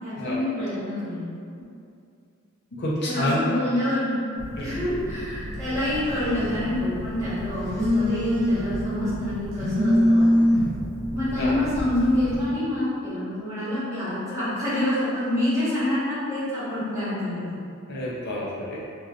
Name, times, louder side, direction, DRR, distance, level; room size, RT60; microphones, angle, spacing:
voice 1, 0.0-1.3 3.0-4.2 4.6-10.6 11.1-17.4, left 1 dB, 15° right, -12 dB, 1.0 m, -27 dB
voice 2, 2.7-3.4 4.6-4.8 11.3-11.6 17.9-18.8, left 1 dB, 55° left, -7 dB, 0.5 m, -28 dB
Telephone, 4.4-12.4, equal, 85° right, 0.7 m, -26 dB
3.1 x 2.2 x 2.3 m, 2.4 s
head